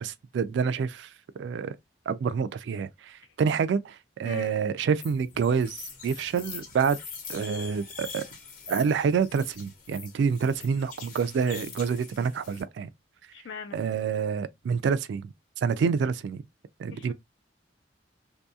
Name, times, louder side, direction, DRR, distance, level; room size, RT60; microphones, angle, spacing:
voice 1, 0.0-1.1 1.4-1.8 2.1-7.0 7.3-8.2 8.7-12.9 13.7-16.4 16.8-17.1, right 6 dB, 75° right, 0.3 m, -27 dB
voice 2, 4.2-4.6 13.3-13.8 16.9-17.1, left 6 dB, 80° left, 0.4 m, -41 dB
sound 1, 5.0-12.6, left 6 dB, 50° left, 0.9 m, -43 dB
2.7 x 2.6 x 2.3 m
head